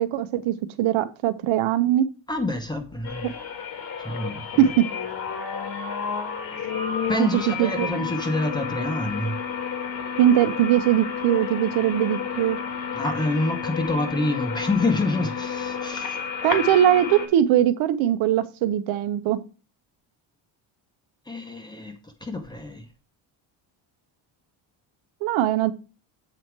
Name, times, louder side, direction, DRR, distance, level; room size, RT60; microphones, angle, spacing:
voice 1, 0.0-2.1 3.2-3.3 4.6-4.9 7.2-7.9 10.2-12.6 16.4-19.4 25.2-25.7, right 11 dB, 80° right, 0.9 m, -21 dB
voice 2, 2.3-3.4 4.0-4.7 7.1-9.4 12.9-16.2 21.3-21.9 22.2-22.8, left 2 dB, 10° left, 0.9 m, -27 dB
sound 1, 3.0-17.3, left 6 dB, 45° left, 1.5 m, -31 dB
7.9 x 4.5 x 4.6 m
cardioid pair, 180°, 47 cm